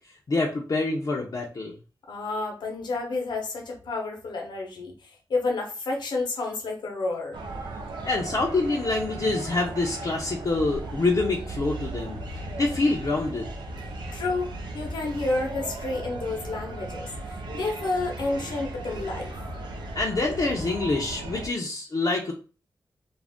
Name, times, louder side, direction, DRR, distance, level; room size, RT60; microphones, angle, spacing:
voice 1, 0.3-1.7 8.0-12.2 12.5-13.5 19.9-22.3, left 3 dB, 55° left, -2 dB, 0.5 m, -26 dB
voice 2, 2.1-7.4 14.1-19.3, left 3 dB, 85° left, 0 dB, 0.8 m, -30 dB
sound 1, 7.3-21.5, right 2 dB, 85° right, 0.5 m, -36 dB
2.5 x 2.0 x 3.4 m, 0.35 s
cardioid pair, 50°, 7 cm